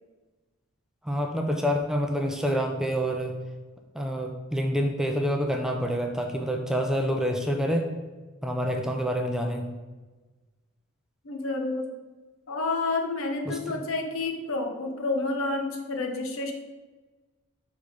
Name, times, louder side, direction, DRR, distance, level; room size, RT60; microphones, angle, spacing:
voice 1, 1.0-3.4 3.9-7.9 8.4-9.7 13.5-13.8, equal, ahead, 2 dB, 0.4 m, -27 dB
voice 2, 11.2-11.9 12.5-16.5, left 3 dB, 70° left, 3 dB, 0.9 m, -29 dB
5.7 x 3.6 x 4.8 m, 1.3 s
head